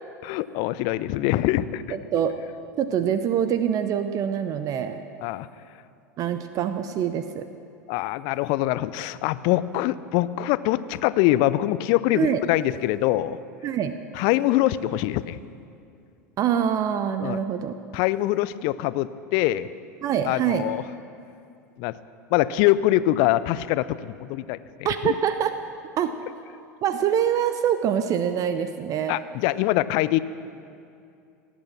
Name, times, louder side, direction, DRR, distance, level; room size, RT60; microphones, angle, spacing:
voice 1, 0.2-2.0 5.2-5.5 7.9-13.4 14.1-15.4 17.2-17.4 17.9-19.7 20.3-20.8 21.8-21.9 22.3-24.6 25.0-25.1 29.1-30.2, left 15 dB, 50° left, 16 dB, 0.5 m, -23 dB
voice 2, 1.9-2.3 2.8-5.0 6.2-7.5 12.1-12.4 13.6-13.9 16.4-17.7 20.0-20.6 24.8-25.5 26.0-26.1 26.8-29.2, right 9 dB, 40° right, 10 dB, 0.7 m, -25 dB
18.0 x 8.4 x 7.3 m, 2.5 s
figure-of-eight pair, 80°, 9 cm